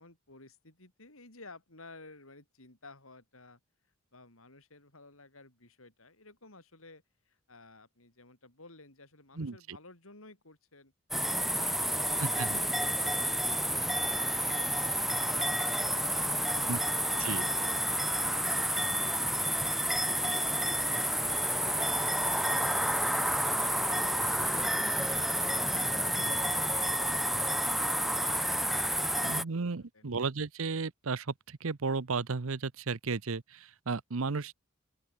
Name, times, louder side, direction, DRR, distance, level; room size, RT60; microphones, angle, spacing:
voice 1, 0.0-3.6 4.1-10.9 11.4-15.6 16.1-21.2 21.6-25.3 25.7-30.1, left 2 dB, 75° left, 6.7 m, -55 dB
voice 2, 9.4-9.8 12.2-12.6 16.7-16.8 17.2-17.5 29.2-34.5, right 4 dB, 75° right, 0.8 m, -34 dB
sound 1, 11.1-29.4, equal, ahead, 1.0 m, -30 dB
open air
head